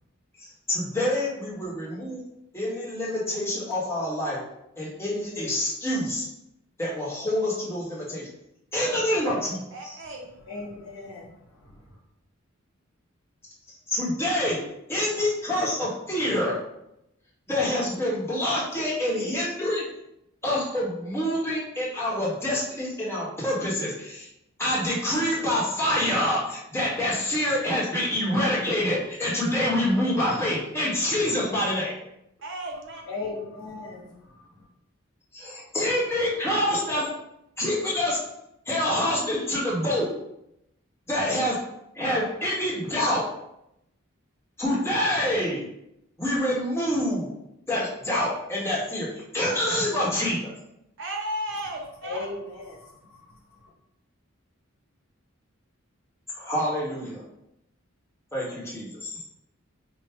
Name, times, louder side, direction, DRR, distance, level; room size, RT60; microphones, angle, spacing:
voice 1, 0.4-2.2 2.5-4.4 4.8-6.3 6.8-8.3 8.7-10.0 13.9-14.6 14.9-16.6 17.5-19.8 20.4-24.3 24.6-32.0 35.3-37.1 37.6-38.2 38.7-40.1 41.1-41.6 41.9-43.3 44.6-45.7 46.2-47.3 47.7-50.5 56.4-57.2 58.3-59.1, left 1 dB, 10° left, -6 dB, 0.9 m, -26 dB
voice 2, 9.7-10.3 32.4-33.0 51.0-52.3, right 1 dB, 55° right, 1 dB, 0.6 m, -34 dB
voice 3, 10.4-12.0 32.9-34.1 52.0-52.9 53.2-53.7, left 3 dB, 75° left, -3 dB, 0.9 m, -37 dB
4.4 x 2.0 x 3.4 m, 0.83 s
head